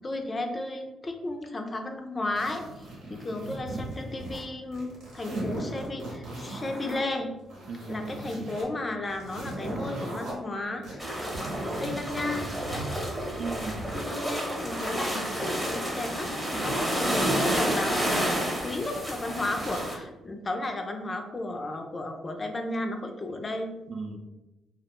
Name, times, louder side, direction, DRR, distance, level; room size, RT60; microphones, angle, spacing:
voice 1, 0.0-2.8 3.1-7.3 7.9-11.2 11.8-12.6 13.9-16.3 16.6-23.7, left 2 dB, 30° left, 4 dB, 0.4 m, -34 dB
sound 1, 2.4-4.4 4.7-7.0 7.4-8.6 9.0-10.3 10.8-14.1 14.5-15.7 16.2-16.8 17.4-17.9 18.5-19.0 19.5-20.0, right 1 dB, 85° right, 1.0 m, -39 dB
voice 2, 7.7-8.6 13.4-13.9 23.9-24.2, right 3 dB, 60° right, 5 dB, 0.3 m, -37 dB
sound 2, 11.0-20.0, right 1 dB, 10° right, 0.7 m, -30 dB
2.4 x 2.1 x 2.9 m, 1.0 s
cardioid pair, 90°, 0 cm